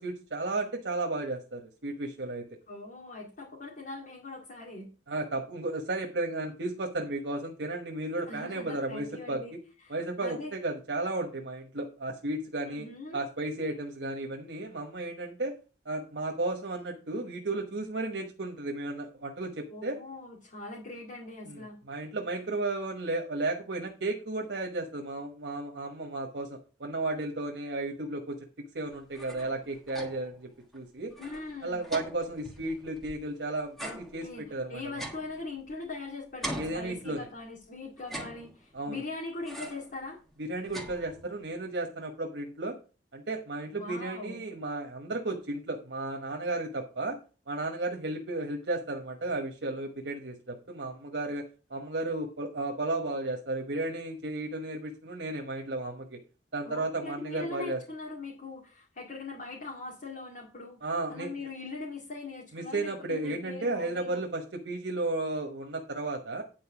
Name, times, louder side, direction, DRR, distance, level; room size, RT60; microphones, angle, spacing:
voice 1, 0.0-2.4 5.1-9.6 9.9-12.9 13.1-15.5 15.8-20.0 21.5-21.6 21.9-28.5 28.7-31.1 31.6-35.0 36.6-37.3 38.7-39.0 40.4-42.8 43.1-47.2 47.5-56.2 56.5-57.8 60.8-61.5 62.5-66.4, right 2 dB, 75° right, 2 dB, 1.2 m, -34 dB
voice 2, 2.7-4.9 8.3-9.5 9.8-10.5 12.6-13.2 19.7-21.8 31.2-31.8 33.8-34.4 34.7-40.2 43.7-44.4 56.6-64.2, left 3 dB, 50° left, -4 dB, 2.4 m, -41 dB
sound 1, 28.9-30.4 30.7-30.8 31.1-33.3 33.8-36.0 36.4-37.5 38.0-38.9 39.5-40.0 40.3-41.5, right 1 dB, ahead, 1.6 m, -42 dB
9.5 x 4.5 x 5.8 m, 0.35 s
head